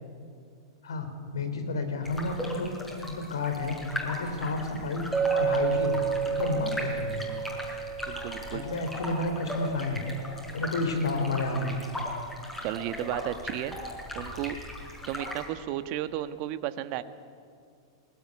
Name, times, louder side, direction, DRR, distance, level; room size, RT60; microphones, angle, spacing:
voice 1, 0.8-2.8 3.1-5.1 5.3-6.0 6.3-7.3 8.5-10.0 10.5-11.8, left 3 dB, 80° left, 7 dB, 3.7 m, -31 dB
sound 1, 2.0-15.4, left 1 dB, 10° left, 6.6 m, -38 dB
Chink clink, 5.1-9.6, right 7 dB, 5° right, 2.3 m, -30 dB
voice 2, 8.0-8.6 12.6-13.8 14.1-14.6 15.1-17.0, right 13 dB, 50° right, 11 dB, 1.4 m, -33 dB
21.5 x 19.5 x 9.8 m, 2.2 s
hypercardioid pair, 110°, 2 cm